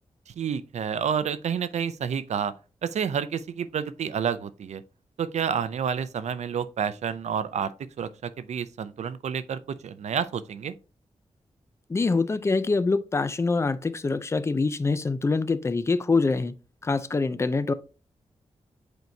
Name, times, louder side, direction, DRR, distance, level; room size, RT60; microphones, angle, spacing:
voice 1, 0.3-2.5 2.8-4.8 5.2-7.7 8.0-10.7, right 7 dB, 80° right, 0.5 m, -29 dB
voice 2, 11.9-16.5 16.8-17.7, left 3 dB, 25° left, 0.5 m, -25 dB
7.9 x 4.5 x 2.7 m
wide cardioid pair, 125°, 11 cm